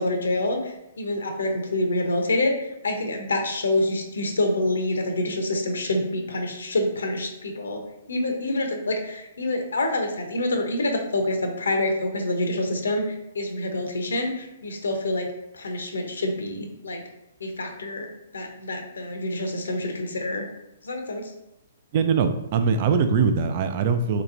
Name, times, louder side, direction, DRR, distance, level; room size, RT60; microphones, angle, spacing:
voice 1, 0.0-2.5 2.8-7.8 8.1-15.3 15.5-17.0 17.4-18.1 18.3-20.5 20.8-21.3, left 1 dB, 75° left, 4 dB, 0.6 m, -27 dB
voice 2, 21.9-24.2, right 5 dB, 45° right, 8 dB, 0.3 m, -22 dB
3.3 x 2.9 x 2.5 m, 0.88 s
hypercardioid pair, 130°, 0 cm